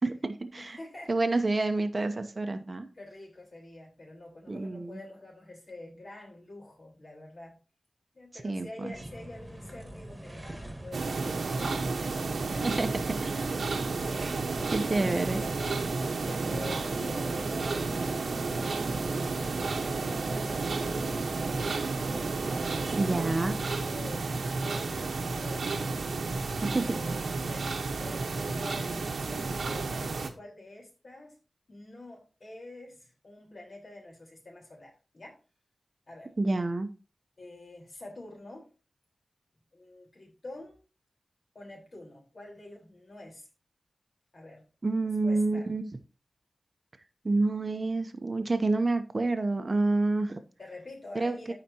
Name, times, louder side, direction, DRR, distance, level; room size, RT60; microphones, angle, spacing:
voice 1, 0.0-0.8 1.1-2.9 4.5-5.0 8.4-8.9 12.6-13.4 14.7-15.4 22.9-23.6 26.7-26.9 27.1-27.2 36.4-36.9 44.8-45.9 47.2-50.4 51.1-51.5, right 2 dB, 40° right, 8 dB, 0.9 m, -28 dB
voice 2, 0.6-1.4 2.9-7.6 8.1-12.2 12.4-12.9 14.2-14.5 14.8-15.0 16.2-22.3 22.8-23.1 23.8-26.0 26.7-31.4 31.7-35.4 36.1-36.3 37.4-38.7 39.7-40.8 41.5-43.5 44.3-44.6 45.0-45.7 50.6-51.5, left 2 dB, 55° left, -1 dB, 4.4 m, -47 dB
sound 1, 8.9-14.3, right 1 dB, 15° right, 1.8 m, -46 dB
sound 2, 10.9-30.3, right 3 dB, 85° right, 1.2 m, -31 dB
15.0 x 5.1 x 2.9 m, 0.33 s
wide cardioid pair, 80°, 0 cm